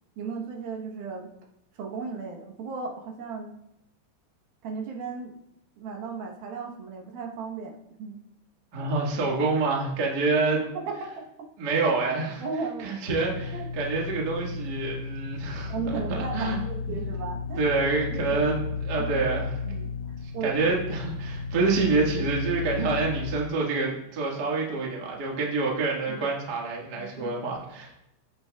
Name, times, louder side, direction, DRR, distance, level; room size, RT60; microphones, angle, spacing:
voice 1, 0.2-1.3 1.7-3.5 4.6-5.4 5.8-7.7 8.0-8.2 10.9-11.0 12.4-13.0 13.5-13.7 15.7-17.7 18.1-18.5 19.0-19.1 19.6-19.9 20.3-20.7 26.1-26.2 27.0-27.3, right 5 dB, 70° right, 0 dB, 2.8 m, -35 dB
voice 2, 8.7-10.6 11.6-12.4 12.8-16.6 17.6-19.5 20.4-27.9, right 3 dB, 50° right, -2 dB, 1.2 m, -27 dB
sound 1, 13.1-23.3, left 5 dB, 80° left, 1.4 m, -33 dB
15.5 x 8.0 x 2.4 m, 0.85 s
omnidirectional pair, 4.8 m